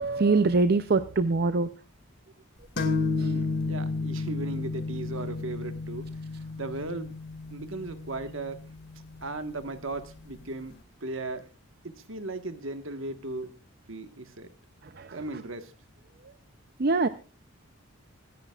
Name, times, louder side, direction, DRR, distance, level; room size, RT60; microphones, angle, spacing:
voice 1, 0.0-1.7 3.2-3.3 15.0-15.2 16.8-17.1, right 3 dB, 45° right, 11 dB, 0.6 m, -24 dB
sound 1, 2.8-10.3, left 3 dB, 50° left, 2.3 m, -32 dB
voice 2, 3.2-6.1 6.6-7.1 7.5-8.7 9.2-11.5 11.8-13.5 13.9-14.5 15.1-15.7, right 2 dB, 65° right, 9 dB, 1.5 m, -37 dB
25.0 x 10.5 x 2.4 m, 0.34 s
head